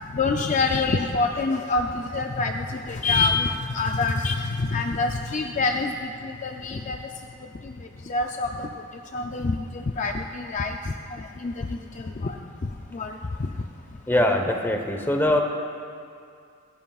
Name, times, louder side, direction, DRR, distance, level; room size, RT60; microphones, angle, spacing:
voice 1, 0.1-7.0 7.6-8.7 9.1-13.5 14.1-14.2, left 3 dB, 35° left, 4 dB, 0.5 m, -27 dB
voice 2, 14.1-15.4, left 1 dB, 10° left, 4 dB, 0.9 m, -22 dB
25.5 x 11.0 x 2.4 m, 2.4 s
head